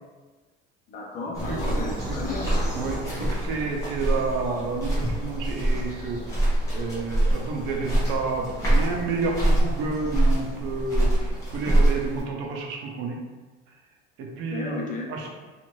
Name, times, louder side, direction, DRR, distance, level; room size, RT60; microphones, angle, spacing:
voice 1, 0.9-2.5 14.3-15.1, left 3 dB, 40° left, -2 dB, 0.6 m, -34 dB
sound 1, 1.3-12.2, right 1 dB, 15° left, 1.0 m, -25 dB
voice 2, 1.4-1.7 2.0-2.2 2.7-13.2 14.2-14.8 15.1-15.3, right 4 dB, 75° right, 0 dB, 0.6 m, -30 dB
2.6 x 2.4 x 3.0 m, 1.3 s
cardioid pair, 155°, 20 cm